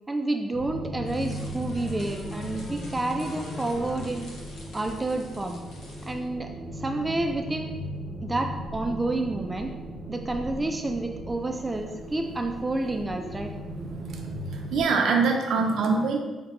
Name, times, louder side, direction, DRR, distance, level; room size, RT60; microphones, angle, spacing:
voice 1, 0.1-4.3 4.7-5.6 6.0-7.7 8.2-9.7 10.1-13.5, right 2 dB, 20° right, 4 dB, 0.3 m, -29 dB
sound 1, 0.5-14.8, equal, ahead, 0.8 m, -37 dB
sound 2, 0.7-4.0, left 3 dB, 40° left, 0.5 m, -42 dB
sound 3, 1.1-6.3, left 1 dB, 75° left, 0.9 m, -48 dB
voice 2, 14.0-16.2, right 4 dB, 75° right, 1 dB, 0.5 m, -24 dB
4.9 x 2.1 x 3.0 m, 1.2 s
cardioid pair, 90°, 0 cm